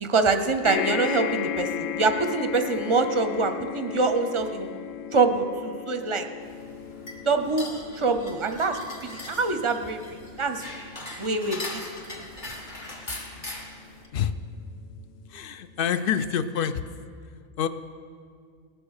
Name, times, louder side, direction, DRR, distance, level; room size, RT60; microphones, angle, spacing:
voice 1, 0.0-4.8 5.1-6.3 7.3-10.7 11.2-11.8, right 3 dB, 30° right, 7 dB, 0.6 m, -25 dB
sound 1, 0.6-15.2 15.9-16.0 16.3-16.4, left 9 dB, 85° left, 1.0 m, -36 dB
sound 2, 6.4-14.1, left 1 dB, 40° left, 1.4 m, -40 dB
voice 2, 15.3-16.8 17.6-17.7, left 8 dB, 60° left, 12 dB, 0.6 m, -26 dB
18.5 x 6.9 x 6.5 m, 2.2 s
omnidirectional pair, 1.3 m